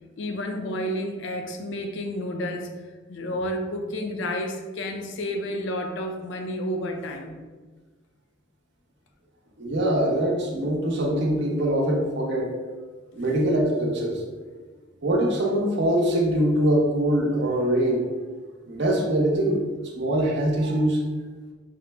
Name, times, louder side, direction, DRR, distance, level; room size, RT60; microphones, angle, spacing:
voice 1, 0.2-2.7 3.1-7.4, left 1 dB, 65° left, 3 dB, 0.5 m, -30 dB
voice 2, 9.6-12.5 13.1-14.2 15.0-18.1 18.7-19.6 20.0-21.0, right 1 dB, 60° right, -1 dB, 0.7 m, -23 dB
5.0 x 2.0 x 3.3 m, 1.3 s
head